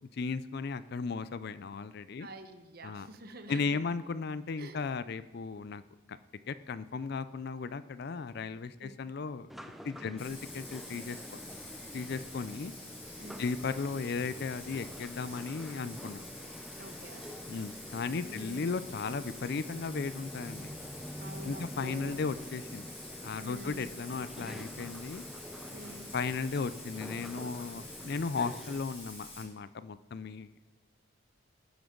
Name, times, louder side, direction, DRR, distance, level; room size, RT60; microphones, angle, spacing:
voice 1, 0.0-2.3 2.8-3.1 3.5-5.8 6.1-6.2 6.5-9.5 9.8-11.2 11.9-12.7 13.4-16.2 17.5-20.7 21.4-22.9 23.2-25.2 26.1-30.5, left 4 dB, 55° left, 14 dB, 0.4 m, -36 dB
voice 2, 2.2-3.8 4.6-4.8 8.8-8.9 10.0-10.2 13.2-13.4 16.8-17.3 18.2-18.7 21.2-22.2 23.4-23.9 25.7-26.0, right 1 dB, 50° right, 7 dB, 1.1 m, -47 dB
sound 1, 9.5-28.8, equal, ahead, 0.6 m, -47 dB
Bathtub (filling or washing), 10.2-29.4, left 2 dB, 30° left, 4.6 m, -48 dB
19.0 x 10.5 x 3.9 m, 1.1 s
head